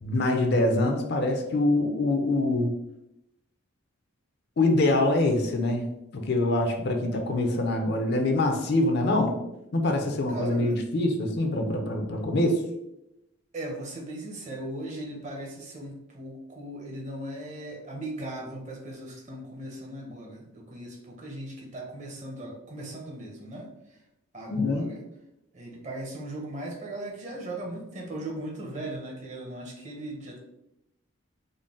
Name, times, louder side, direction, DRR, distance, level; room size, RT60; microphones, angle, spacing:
voice 1, 0.0-2.7 4.6-5.9 6.1-9.4 9.7-12.6 24.5-24.9, left 2 dB, 50° left, 4 dB, 0.4 m, -24 dB
voice 2, 10.3-10.8 13.5-24.0 24.3-25.0 25.5-30.4, right 1 dB, 35° right, -1 dB, 0.7 m, -38 dB
3.8 x 2.0 x 3.6 m, 0.85 s
head